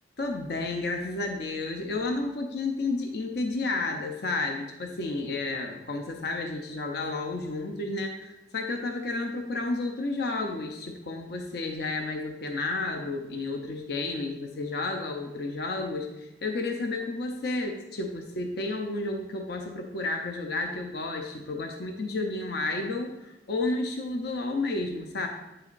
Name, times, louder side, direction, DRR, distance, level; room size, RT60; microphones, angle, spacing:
voice 1, 0.2-25.3, left 2 dB, 60° left, 3 dB, 0.6 m, -31 dB
8.7 x 6.7 x 2.5 m, 0.94 s
head